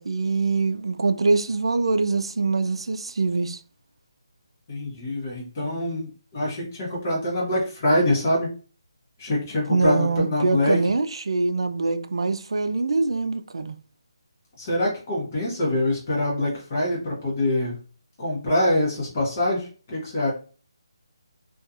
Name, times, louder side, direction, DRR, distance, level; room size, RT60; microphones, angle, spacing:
voice 1, 0.0-3.6 9.7-13.8, right 3 dB, 75° right, 0.3 m, -24 dB
voice 2, 4.7-8.5 9.2-10.8 14.6-17.8 18.2-20.3, left 1 dB, 25° left, 0.8 m, -24 dB
2.7 x 2.3 x 2.4 m
hypercardioid pair, 170°, 3 cm